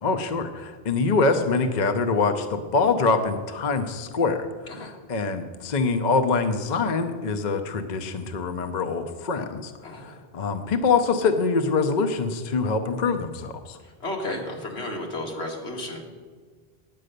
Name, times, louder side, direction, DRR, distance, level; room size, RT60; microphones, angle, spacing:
voice 1, 0.0-13.8, left 4 dB, 50° left, 7 dB, 0.8 m, -24 dB
voice 2, 9.8-10.1 13.8-16.0, left 1 dB, 85° left, 0 dB, 2.0 m, -33 dB
9.3 x 8.7 x 6.6 m, 1.6 s
omnidirectional pair, 1.1 m